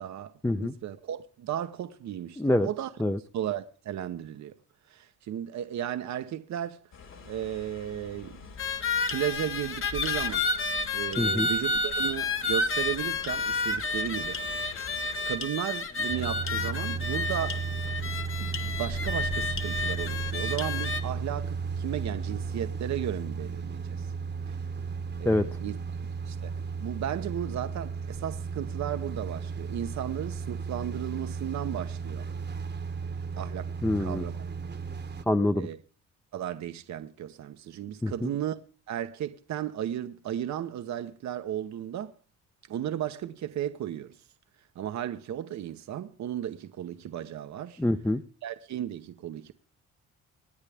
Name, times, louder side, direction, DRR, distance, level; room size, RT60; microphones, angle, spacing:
voice 1, 0.0-2.9 3.3-4.6 4.8-6.8 7.2-8.5 9.1-10.5 10.9-14.4 15.2-17.6 18.4-24.1 24.5-24.6 25.2-25.8 26.3-32.3 33.4-33.7 34.0-34.5 35.5-35.8 36.3-38.6 38.9-42.1 42.7-44.3 44.6-47.8 48.4-49.5, right 11 dB, 65° right, 1.0 m, -35 dB
voice 2, 2.4-2.7 3.0-3.2 11.2-11.5 25.2-25.4 33.8-34.2 35.3-35.7 38.0-38.3 47.8-48.2, left 1 dB, 5° left, 0.7 m, -25 dB
sound 1, 6.9-15.4, left 5 dB, 60° left, 4.6 m, -46 dB
sound 2, 8.6-21.0, left 3 dB, 45° left, 1.6 m, -30 dB
sound 3, 16.1-35.2, right 5 dB, 35° right, 1.2 m, -34 dB
25.5 x 9.8 x 3.5 m
cardioid pair, 90°, 30 cm